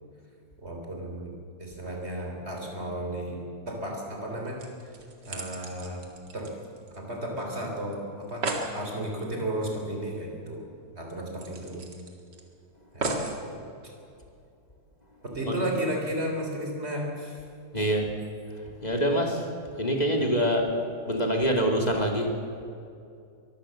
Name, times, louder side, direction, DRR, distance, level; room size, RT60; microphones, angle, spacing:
voice 1, 0.6-1.3 1.6-4.6 5.2-6.0 6.3-6.5 7.0-8.5 8.7-10.7 11.0-11.8 12.9-13.9 15.2-17.4 17.8-18.0 20.2-20.6, right 1 dB, 20° right, 1 dB, 3.6 m, -34 dB
sound 1, 4.3-4.4 4.6-7.2 7.5-7.6 7.9-8.0 8.2-8.7 10.2-10.3 10.7-10.8 11.4-12.4 13.0-13.4 14.1-14.2, right 3 dB, 35° right, 2.3 m, -35 dB
voice 2, 17.7-18.1 18.8-19.4 19.8-20.6 21.1-22.3, equal, 15° left, 1 dB, 1.8 m, -25 dB
23.0 x 14.5 x 7.8 m, 2.5 s
omnidirectional pair, 3.7 m